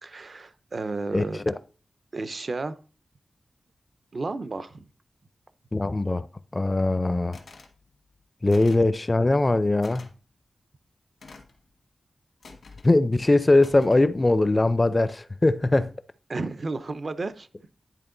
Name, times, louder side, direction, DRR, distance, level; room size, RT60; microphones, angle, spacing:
voice 1, 0.0-1.4 2.1-2.8 4.1-4.9 16.3-17.5, right 3 dB, 55° right, 0.6 m, -32 dB
voice 2, 1.1-1.5 5.7-6.3 6.5-7.4 8.4-10.1 12.8-15.9, left 2 dB, 30° left, 0.5 m, -21 dB
sound 1, 7.3-7.7 8.5-8.9 9.8-10.1 11.2-11.6 12.4-12.9 13.6-14.1, left 4 dB, 80° left, 1.3 m, -48 dB
10.0 x 3.6 x 3.8 m
cardioid pair, 60°, 0 cm